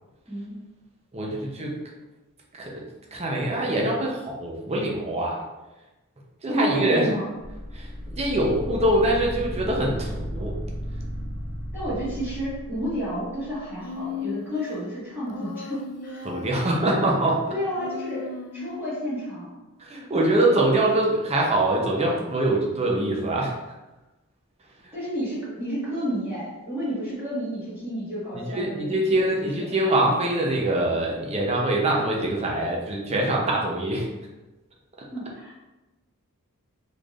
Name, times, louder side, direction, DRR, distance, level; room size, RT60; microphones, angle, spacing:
voice 1, 0.3-0.6 6.5-7.3 11.7-16.3 17.5-18.2 18.5-19.6 24.9-29.6 35.1-35.5, equal, 10° right, -12 dB, 1.4 m, -31 dB
voice 2, 1.1-1.8 2.5-5.4 6.4-7.1 7.7-10.6 16.2-17.4 19.8-23.6 24.8-24.9 28.3-34.1, right 1 dB, 30° right, -1 dB, 0.6 m, -24 dB
sound 1, 7.4-13.6, equal, 70° right, 1.0 m, -34 dB
Human voice, 13.8-14.8 15.3-16.9 17.7-19.0, left 5 dB, 80° left, 0.3 m, -36 dB
4.2 x 3.3 x 2.4 m, 1.1 s
head